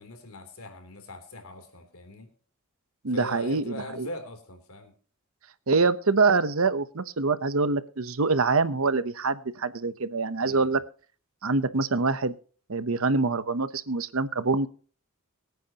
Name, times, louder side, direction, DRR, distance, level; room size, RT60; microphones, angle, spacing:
voice 1, 0.0-2.3 3.1-4.9 10.4-10.8, left 1 dB, 75° left, 6 dB, 3.3 m, -42 dB
voice 2, 3.0-4.1 5.7-10.8 11.4-12.3 12.7-14.7, right 4 dB, 70° right, 13 dB, 0.9 m, -25 dB
23.5 x 9.3 x 2.9 m, 0.41 s
head